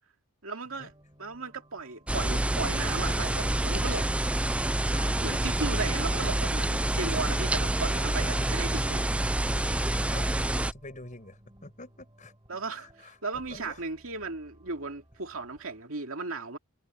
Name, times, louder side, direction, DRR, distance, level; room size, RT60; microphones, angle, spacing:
voice 1, 0.4-0.9 1.2-4.1 5.2-9.1 12.5-16.6, right 3 dB, 65° right, 2.6 m, -36 dB
sound 1, 0.7-15.8, right 1 dB, 20° right, 4.6 m, -58 dB
sound 2, 2.1-10.7, right 1 dB, 5° right, 0.3 m, -27 dB
voice 2, 8.1-8.4 10.1-10.4 10.7-12.3 12.8-13.2 13.5-13.9, left 2 dB, 35° left, 6.5 m, -46 dB
head